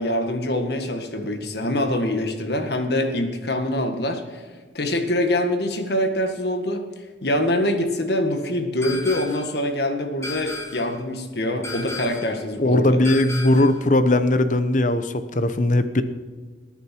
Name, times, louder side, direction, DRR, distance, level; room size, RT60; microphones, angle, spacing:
voice 1, 0.0-4.4 4.7-6.8 7.2-13.0, left 1 dB, 65° left, 6 dB, 1.8 m, -24 dB
sound 1, 8.8-9.6 10.2-11.0 11.6-12.4 13.0-13.8, left 2 dB, 15° left, 2.7 m, -34 dB
voice 2, 12.6-16.0, left 1 dB, 45° left, 11 dB, 0.9 m, -19 dB
20.0 x 9.2 x 4.6 m, 1.5 s
head